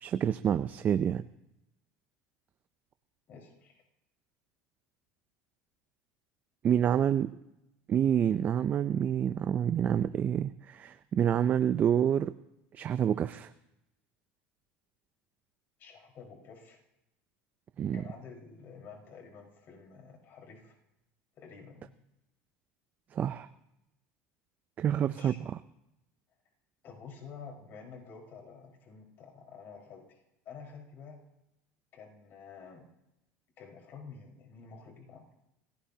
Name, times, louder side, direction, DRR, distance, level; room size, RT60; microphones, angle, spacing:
voice 1, 0.0-1.2 6.6-7.3 7.9-12.3 12.7-13.5 17.8-18.0 23.1-23.5 24.8-25.6, right 9 dB, 35° right, 11 dB, 0.5 m, -28 dB
voice 2, 3.3-3.8 15.8-16.8 17.9-20.7 21.3-21.9 25.0-25.5 26.8-30.2 30.4-31.2 31.9-32.9 33.6-35.3, left 5 dB, 45° left, 1 dB, 4.7 m, -49 dB
28.0 x 17.0 x 2.8 m, 0.87 s
supercardioid pair, 130°, 5 cm